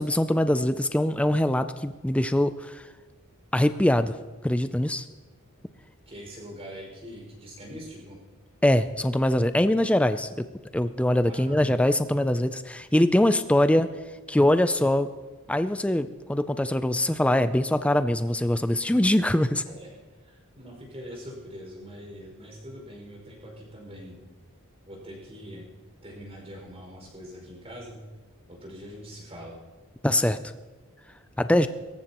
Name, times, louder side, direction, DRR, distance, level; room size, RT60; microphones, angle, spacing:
voice 1, 0.0-2.8 3.5-4.1 4.4-5.1 8.6-10.5 10.7-13.9 14.3-15.1 15.5-19.6 30.0-30.4 31.4-31.7, left 1 dB, 5° left, 11 dB, 0.4 m, -23 dB
voice 2, 6.1-8.2 11.2-11.6 19.7-19.9 20.2-24.2 24.9-25.7 26.0-28.0 28.5-29.6, equal, 30° right, -1 dB, 5.5 m, -43 dB
23.5 x 14.0 x 3.0 m, 1.3 s
head